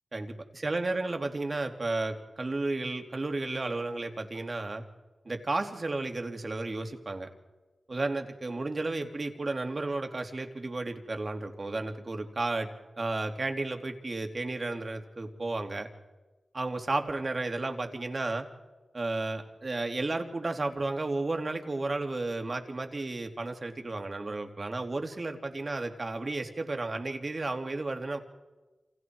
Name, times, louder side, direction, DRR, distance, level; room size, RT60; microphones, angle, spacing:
voice 1, 0.1-4.8 5.2-7.3 7.9-12.7 13.0-15.9 16.5-18.5 18.9-28.2, right 2 dB, 50° right, 4 dB, 3.0 m, -33 dB
29.5 x 26.5 x 4.8 m, 1.2 s
cardioid pair, 40°, 0 cm